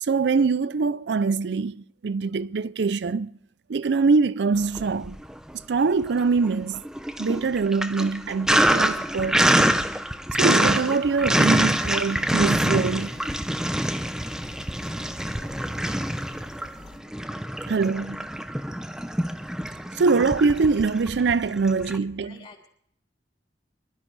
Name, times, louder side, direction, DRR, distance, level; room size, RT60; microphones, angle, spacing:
voice 1, 0.0-3.3 3.7-5.2 5.7-6.8 7.2-9.9 10.4-13.2 17.7-18.3 19.9-22.5, right 4 dB, 70° right, 0.5 m, -23 dB
Sink (filling or washing), 4.6-5.5 5.9-22.0, equal, 5° right, 0.6 m, -25 dB
sound 1, 11.2-17.0, left 2 dB, 75° left, 1.1 m, -49 dB
voice 2, 21.7-22.7, left 4 dB, 35° left, 3.3 m, -49 dB
25.5 x 13.0 x 3.3 m
head